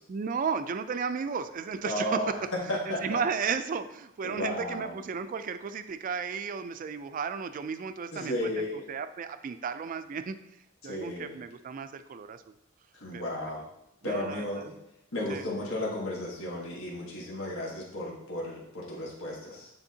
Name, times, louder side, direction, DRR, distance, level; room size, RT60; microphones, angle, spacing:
voice 1, 0.1-2.4 2.9-10.4 10.8-12.4 13.1-13.3 14.0-14.7 15.3-15.4, right 6 dB, 40° right, 11 dB, 0.3 m, -34 dB
voice 2, 1.8-2.4 2.7-3.2 4.2-4.9 8.1-8.8 10.8-11.4 12.9-13.6 14.0-14.7 15.1-19.7, left 1 dB, 90° left, -5 dB, 1.4 m, -34 dB
9.8 x 3.5 x 2.8 m, 0.84 s
head